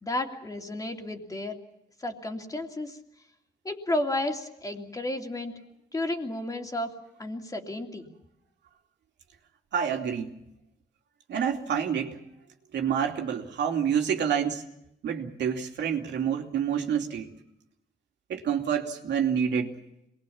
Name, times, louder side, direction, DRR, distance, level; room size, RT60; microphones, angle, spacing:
voice 1, 0.0-1.6 2.0-3.0 3.6-5.5 5.9-6.9 7.2-8.1, left 1 dB, 20° left, 3 dB, 2.8 m, -32 dB
voice 2, 9.7-10.3 11.3-12.2 12.7-14.6 15.0-17.3 18.3-19.7, right 8 dB, 80° right, 3 dB, 2.9 m, -28 dB
26.5 x 21.0 x 7.2 m, 0.81 s
cardioid pair, 130°, 18 cm